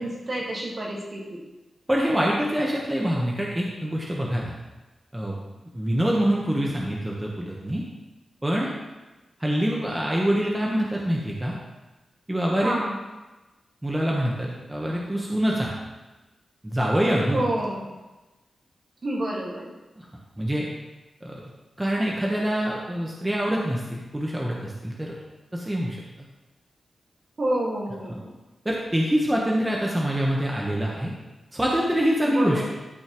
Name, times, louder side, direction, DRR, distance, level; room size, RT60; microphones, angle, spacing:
voice 1, 0.0-1.4 12.6-13.0 17.3-17.9 19.0-19.7 27.4-28.3 32.2-32.7, right 1 dB, 45° right, -3 dB, 1.9 m, -29 dB
voice 2, 1.9-4.5 5.1-5.4 5.7-7.8 8.4-8.7 9.4-11.6 12.3-12.7 13.8-15.7 16.6-17.4 20.0-20.1 20.4-20.7 21.2-21.4 21.8-25.1 25.5-26.0 28.6-31.1 31.5-32.6, equal, 10° right, -3 dB, 1.1 m, -25 dB
12.0 x 5.4 x 3.1 m, 1.1 s
wide cardioid pair, 105°, 0 cm